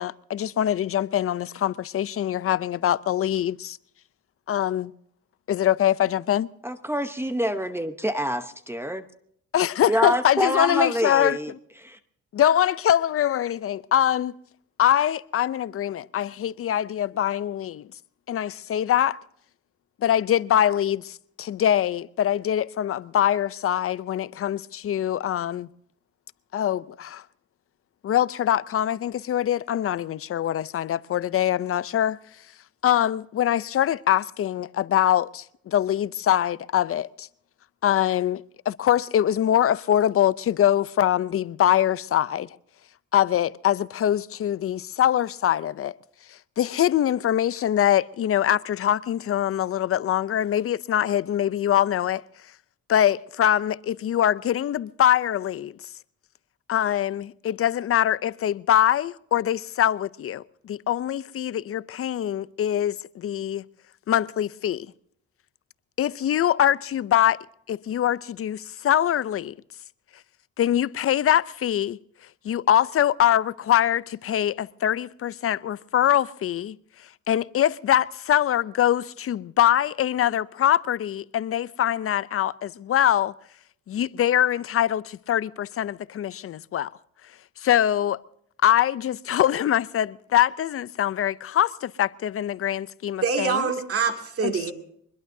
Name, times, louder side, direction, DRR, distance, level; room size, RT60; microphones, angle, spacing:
voice 1, 0.0-3.8 4.5-4.9 5.5-6.5 9.5-11.6 12.3-14.3 14.8-17.9 18.3-19.2 20.0-25.7 26.5-27.2 28.0-32.2 32.8-37.3 37.8-42.5 43.1-45.9 46.6-52.2 52.9-55.7 56.7-63.6 64.1-64.9 66.0-67.4 67.7-69.5 70.6-72.0 72.4-76.8 77.3-83.3 83.9-86.9 87.6-88.2 88.6-93.7 94.4-94.7, left 11 dB, 50° left, 0.5 m, -23 dB
voice 2, 6.6-9.0 9.9-11.5 11.8-12.0, equal, 10° right, 0.9 m, -26 dB
voice 3, 93.2-94.7, right 5 dB, 50° right, 2.4 m, -25 dB
23.5 x 21.0 x 2.7 m
cardioid pair, 90°, 30 cm